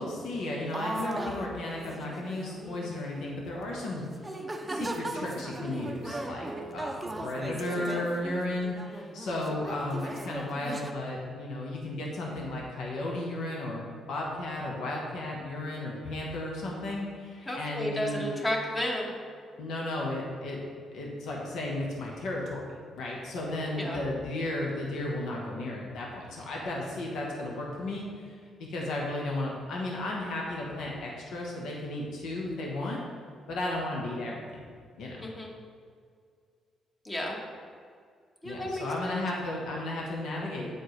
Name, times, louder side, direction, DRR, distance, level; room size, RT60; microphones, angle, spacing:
voice 1, 0.0-4.0 4.7-18.2 19.6-20.6 20.9-22.6 23.0-33.0 33.5-34.7 35.0-35.3 38.4-40.7, left 1 dB, 80° left, -2 dB, 1.1 m, -34 dB
sound 1, 0.7-3.3 3.8-3.9 4.2-10.9, right 1 dB, 15° right, 0.6 m, -38 dB
voice 2, 17.5-19.1 23.8-24.0 35.2-35.5 37.0-37.4 38.4-39.2, left 1 dB, 25° left, -1 dB, 1.3 m, -32 dB
8.3 x 4.4 x 3.2 m, 2.1 s
cardioid pair, 90°, 0 cm